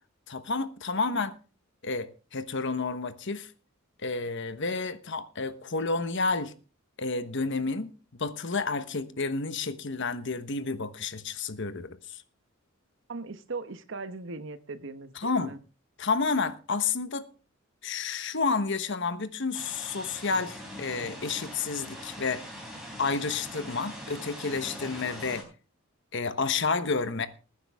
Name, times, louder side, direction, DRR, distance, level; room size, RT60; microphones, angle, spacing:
voice 1, 0.3-1.4 1.8-3.5 4.0-6.5 7.0-12.2 15.1-15.5 16.0-17.3 17.8-22.4 23.0-25.4 26.1-27.3, left 4 dB, 60° left, 1.1 m, -30 dB
voice 2, 13.1-15.6, right 3 dB, 60° right, 1.0 m, -39 dB
sound 1, 19.5-25.4, equal, 5° right, 4.4 m, -42 dB
20.0 x 9.7 x 3.6 m
head